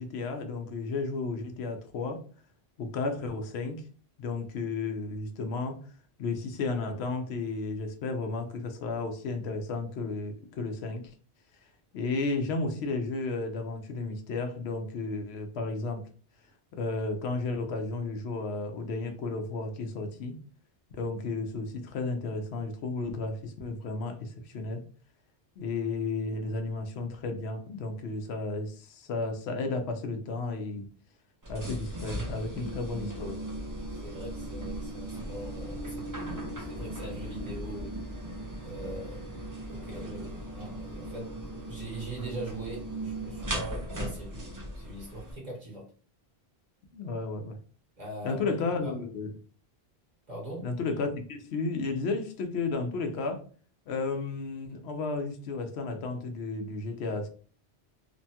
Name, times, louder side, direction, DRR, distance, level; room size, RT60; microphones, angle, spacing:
voice 1, 0.0-2.2 2.8-3.8 4.2-5.8 6.2-11.0 11.9-16.0 16.7-20.4 20.9-24.8 25.6-30.9 31.5-33.4 46.9-47.6 48.2-49.3 50.6-53.4 53.9-57.3, left 3 dB, 90° left, 6 dB, 0.8 m, -33 dB
sound 1, 31.4-45.3, right 1 dB, 25° right, 0.5 m, -38 dB
voice 2, 33.9-37.9 38.6-39.2 39.7-41.3 41.6-45.8 48.0-48.5 48.8-49.0 50.3-50.7, right 1 dB, 45° right, -3 dB, 1.3 m, -42 dB
3.0 x 2.2 x 2.7 m, 0.42 s
omnidirectional pair, 1.1 m